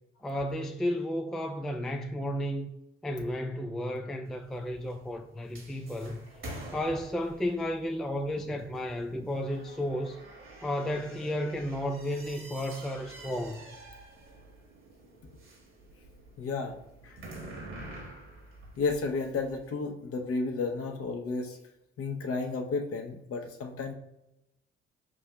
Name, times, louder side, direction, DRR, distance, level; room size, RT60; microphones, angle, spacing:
voice 1, 0.2-2.7 3.0-6.2 6.7-10.2 10.6-13.6, left 1 dB, ahead, 0.3 m, -33 dB
sound 1, 4.3-19.7, right 1 dB, 40° right, 1.4 m, -48 dB
voice 2, 16.4-16.7 17.0-17.2 18.8-21.6 22.0-23.9, left 4 dB, 50° left, 0.8 m, -32 dB
6.0 x 2.6 x 2.3 m
hypercardioid pair, 45°, 30 cm